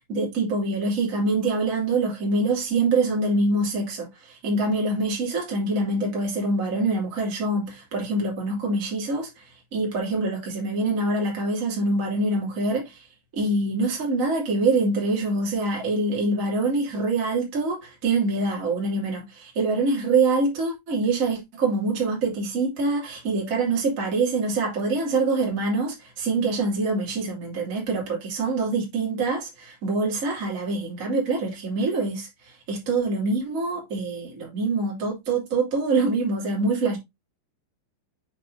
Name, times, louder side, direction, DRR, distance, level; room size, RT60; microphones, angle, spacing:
voice 1, 0.1-9.3 9.7-13.0 13.3-32.3 32.7-37.0, right 3 dB, 20° right, 2.7 m, -25 dB
6.7 x 6.2 x 2.7 m
omnidirectional pair, 5.1 m